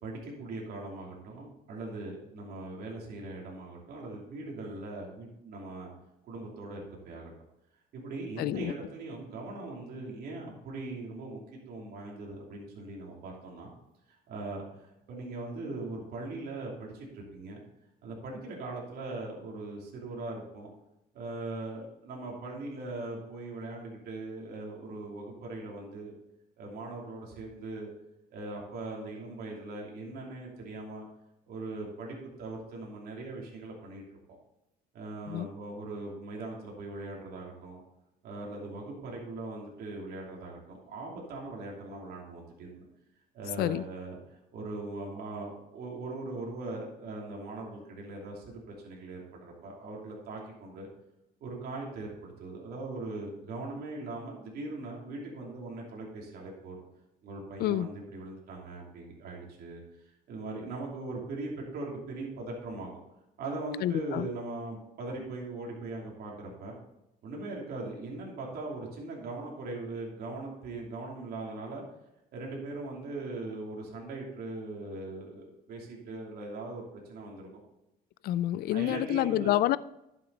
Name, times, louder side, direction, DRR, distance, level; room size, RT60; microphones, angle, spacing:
voice 1, 0.0-5.9 6.3-7.3 7.9-11.4 11.7-13.7 14.3-14.7 15.1-17.6 18.0-20.7 21.1-26.1 26.6-27.9 28.3-31.0 31.5-34.0 34.9-37.8 38.2-42.9 43.3-50.9 51.4-56.8 57.2-59.8 60.3-62.9 63.4-66.8 67.2-71.8 72.3-77.5 78.7-79.6, right 2 dB, 65° right, 2.9 m, -40 dB
voice 2, 8.4-8.7 35.3-35.5 43.6-43.9 57.6-57.9 63.8-64.3 78.2-79.8, left 14 dB, 65° left, 0.4 m, -28 dB
11.0 x 7.2 x 4.0 m
cardioid pair, 110°, 17 cm